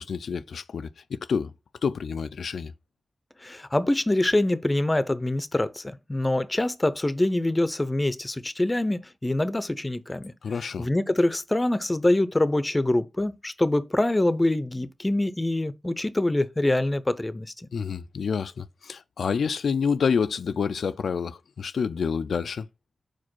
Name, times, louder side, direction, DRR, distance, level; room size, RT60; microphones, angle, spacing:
voice 1, 0.0-1.5 1.8-2.7 10.4-10.9 17.7-22.7, left 6 dB, 90° left, 0.3 m, -28 dB
voice 2, 3.4-10.3 10.8-17.5, left 1 dB, 20° left, 0.6 m, -25 dB
4.9 x 4.6 x 6.1 m
wide cardioid pair, 100°, 0 cm